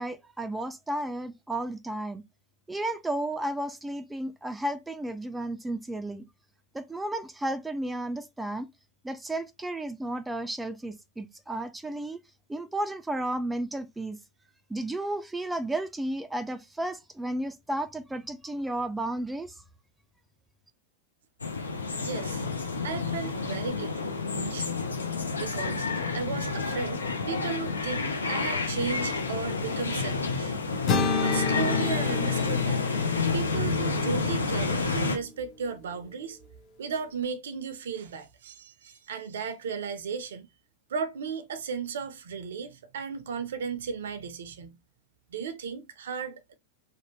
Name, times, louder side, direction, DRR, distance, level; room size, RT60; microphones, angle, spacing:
voice 1, 0.0-2.2 2.7-6.2 6.7-8.7 9.0-12.2 12.5-14.2 14.7-19.5, right 1 dB, 5° right, 0.3 m, -33 dB
sound 1, 21.4-35.2, left 4 dB, 85° left, 0.4 m, -29 dB
voice 2, 22.0-22.4 22.8-24.9 25.4-25.9 26.1-30.5 31.2-32.9 33.3-36.4 36.8-40.5 40.9-44.8 45.3-46.5, right 6 dB, 70° right, 0.4 m, -35 dB
sound 2, 30.9-34.9, left 4 dB, 40° left, 0.8 m, -30 dB
2.6 x 2.1 x 3.0 m
figure-of-eight pair, 95°, 0 cm